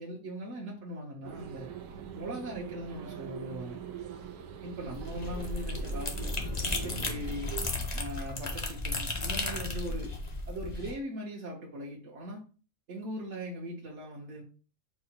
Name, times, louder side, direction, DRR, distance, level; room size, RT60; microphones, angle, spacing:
voice 1, 0.0-1.7 2.1-3.8 4.6-6.3 6.7-7.5 7.9-10.1 10.5-12.4 12.9-14.4, equal, 60° right, -3 dB, 1.1 m, -40 dB
sound 1, 1.2-7.7, right 9 dB, 90° right, 1.0 m, -43 dB
sound 2, 4.8-10.9, left 2 dB, 30° left, 0.6 m, -34 dB
4.7 x 2.1 x 4.3 m, 0.37 s
omnidirectional pair, 1.4 m